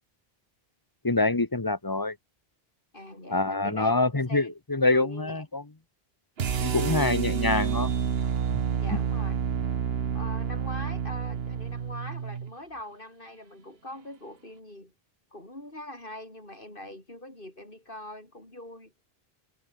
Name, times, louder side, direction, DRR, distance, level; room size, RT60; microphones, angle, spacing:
voice 1, 1.0-2.2 3.3-5.6 6.6-7.9 8.5-8.6, left 2 dB, 20° left, 1.2 m, -25 dB
voice 2, 2.9-3.9 4.3-5.4 8.8-9.5 10.1-14.9 15.3-18.9, left 1 dB, 60° left, 7.0 m, -43 dB
sound 1, 6.4-12.5, right 7 dB, 75° right, 1.3 m, -29 dB
omnidirectional pair, 1.0 m